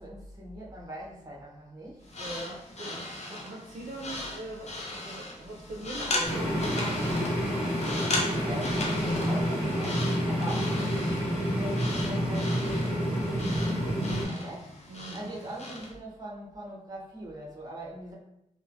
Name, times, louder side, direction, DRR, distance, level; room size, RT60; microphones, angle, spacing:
voice 1, 0.0-2.1 8.2-14.7 15.1-18.1, right 1 dB, 30° right, -4 dB, 0.9 m, -42 dB
sound 1, 2.0-15.9, left 2 dB, 55° left, 0.5 m, -37 dB
voice 2, 2.2-7.1 14.9-15.4, right 2 dB, 80° right, -2 dB, 0.5 m, -42 dB
sound 2, 6.2-14.3, equal, 10° left, 1.5 m, -28 dB
3.1 x 2.1 x 2.5 m, 0.79 s
wide cardioid pair, 85°, 13 cm